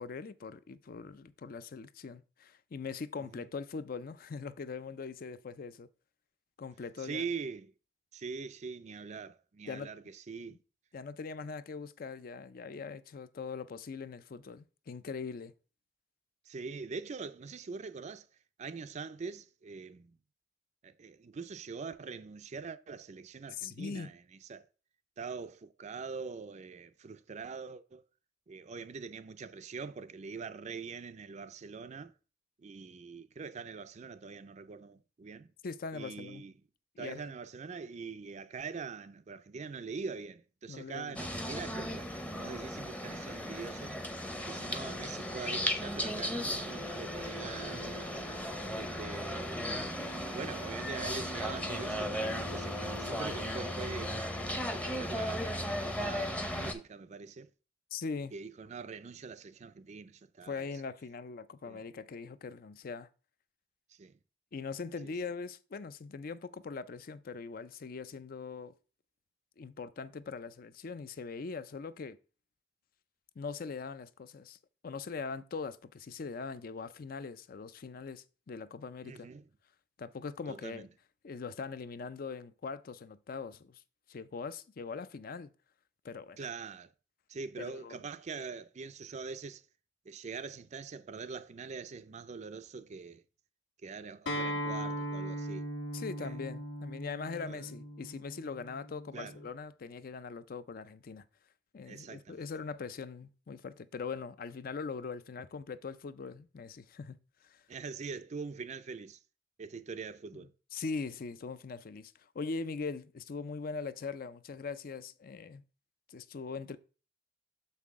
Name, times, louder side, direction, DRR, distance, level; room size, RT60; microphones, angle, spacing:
voice 1, 0.0-5.9 6.6-7.2 9.7-9.9 10.9-15.5 23.6-24.1 35.6-36.4 37.0-37.2 40.7-41.2 57.9-58.3 60.5-63.1 64.5-68.7 69.6-72.2 73.4-74.6 74.8-79.3 80.0-80.9 81.2-83.8 84.1-85.5 86.0-86.5 87.6-88.0 95.9-101.2 101.7-107.2 107.4-107.6 110.3-115.6 116.1-116.8, left 4 dB, 50° left, 0.4 m, -41 dB
voice 2, 7.0-7.7 8.1-10.6 16.5-18.3 18.6-20.2 20.8-24.7 25.2-28.0 28.5-32.1 32.6-35.5 35.9-36.5 37.0-44.0 44.5-48.2 48.8-54.2 54.7-57.5 58.3-60.7 61.7-61.8 63.9-64.1 65.0-65.1 79.0-79.4 80.5-80.9 86.4-86.9 87.3-89.6 90.1-93.2 93.8-95.7 96.2-96.4 97.4-97.7 99.1-99.4 101.8-102.4 107.7-109.2 109.6-110.5, right 5 dB, 40° right, 0.4 m, -43 dB
sound 1, 41.2-56.7, equal, 10° left, 0.7 m, -36 dB
Acoustic guitar, 94.3-99.5, equal, 75° left, 1.4 m, -39 dB
6.7 x 5.7 x 3.6 m
head